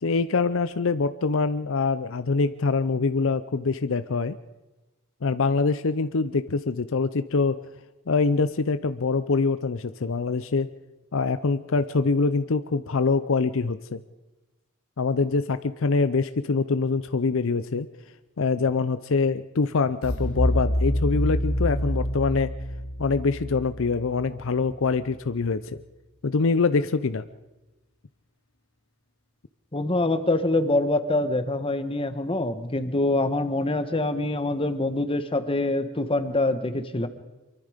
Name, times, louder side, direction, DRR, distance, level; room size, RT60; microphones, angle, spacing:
voice 1, 0.0-4.4 5.2-7.6 8.1-10.7 11.1-14.0 15.0-17.9 18.4-22.5 23.0-25.8 26.2-27.2, left 4 dB, 65° left, 12 dB, 0.6 m, -24 dB
sound 1, 20.0-24.9, equal, 80° left, 2.2 m, -27 dB
voice 2, 29.7-37.1, left 2 dB, 25° left, 10 dB, 1.4 m, -25 dB
24.5 x 23.5 x 5.1 m, 1.1 s
head